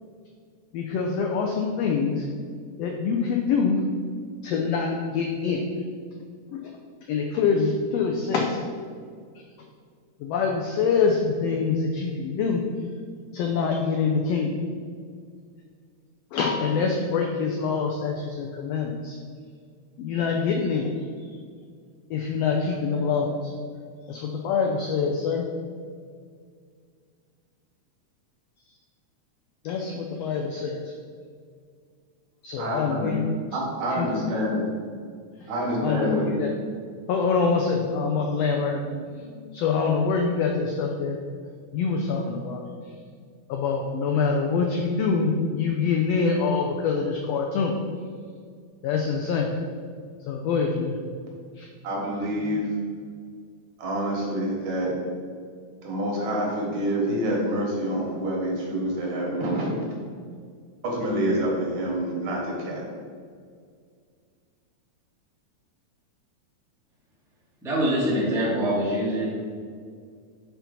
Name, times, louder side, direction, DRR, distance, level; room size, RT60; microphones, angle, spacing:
voice 1, 0.7-2.2 2.8-3.8 4.4-5.7 6.5-6.7 7.1-8.6 10.2-12.6 13.3-14.5 16.3-19.2 20.0-20.9 21.2-21.3 22.1-23.5 24.1-25.4 29.6-30.9 32.4-33.2 33.9-34.1 35.8-36.5 37.1-38.8 39.5-41.2 41.7-42.6 43.5-47.7 48.8-49.5 50.3-50.9 51.6-51.7, left 5 dB, 85° left, 2 dB, 1.4 m, -25 dB
voice 2, 32.6-33.1 33.5-34.6 35.5-36.4 38.8-39.4 51.8-52.7 53.8-54.9 55.8-59.8 60.8-62.8, equal, 75° right, -2 dB, 2.8 m, -27 dB
voice 3, 67.6-69.3, equal, ahead, -7 dB, 0.7 m, -24 dB
5.9 x 4.5 x 5.2 m, 2.1 s
omnidirectional pair, 3.5 m